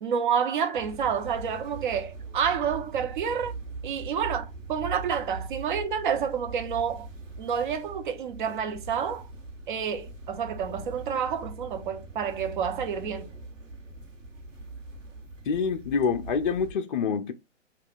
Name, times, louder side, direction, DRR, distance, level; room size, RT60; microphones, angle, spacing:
voice 1, 0.0-3.5 3.8-7.1 7.4-9.3 9.7-13.3, right 7 dB, 40° right, 0.7 m, -29 dB
sound 1, 0.7-16.7, right 3 dB, 90° right, 1.2 m, -41 dB
voice 2, 15.5-17.3, left 5 dB, 45° left, 0.5 m, -26 dB
5.7 x 2.4 x 2.3 m
figure-of-eight pair, 135°, 37 cm